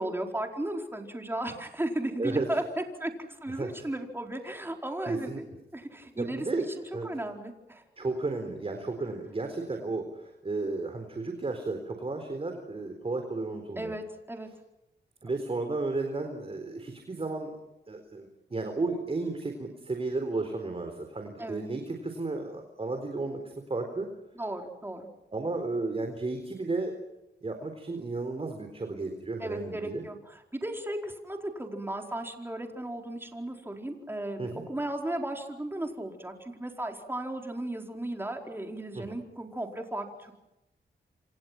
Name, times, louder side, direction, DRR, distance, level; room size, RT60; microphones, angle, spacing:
voice 1, 0.0-5.4 5.7-6.5 7.0-7.8 13.8-14.5 21.4-21.6 24.4-25.0 29.4-40.4, right 1 dB, 10° right, 3 dB, 4.5 m, -35 dB
voice 2, 2.2-2.5 3.5-3.9 5.1-5.4 6.2-6.7 6.9-7.1 8.0-13.9 15.2-17.6 17.9-24.1 25.3-26.9 27.4-30.0 34.4-34.6 38.9-39.2, right 3 dB, 30° right, 5 dB, 4.0 m, -33 dB
28.5 x 26.5 x 6.0 m, 0.94 s
cardioid pair, 85°, 18 cm